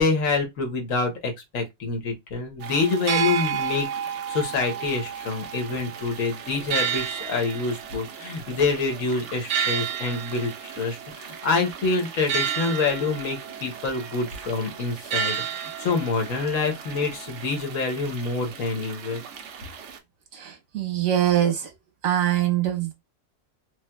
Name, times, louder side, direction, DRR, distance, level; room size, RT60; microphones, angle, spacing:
voice 1, 0.0-19.2, left 4 dB, 75° left, 1.4 m, -26 dB
sound 1, 2.6-20.0, right 8 dB, 65° right, 0.9 m, -32 dB
voice 2, 20.3-21.7 22.0-22.9, right 11 dB, 85° right, 1.4 m, -23 dB
3.3 x 3.0 x 2.2 m
omnidirectional pair, 1.4 m